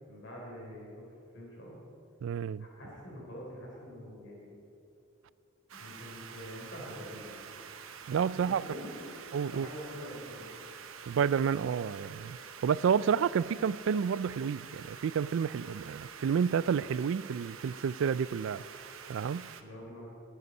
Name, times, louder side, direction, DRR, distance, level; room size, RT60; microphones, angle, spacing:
voice 1, 0.1-1.0 1.3-1.8 2.8-4.5 5.7-7.5 8.3-9.2 9.5-10.5 19.6-20.1, equal, 60° left, 3.7 m, -45 dB
voice 2, 2.2-2.6 8.1-8.6 9.3-9.7 11.1-12.4 12.6-18.6 19.1-19.5, right 7 dB, 65° right, 0.3 m, -30 dB
sound 1, 5.7-19.6, right 7 dB, 80° right, 0.9 m, -47 dB
21.0 x 8.2 x 5.4 m
head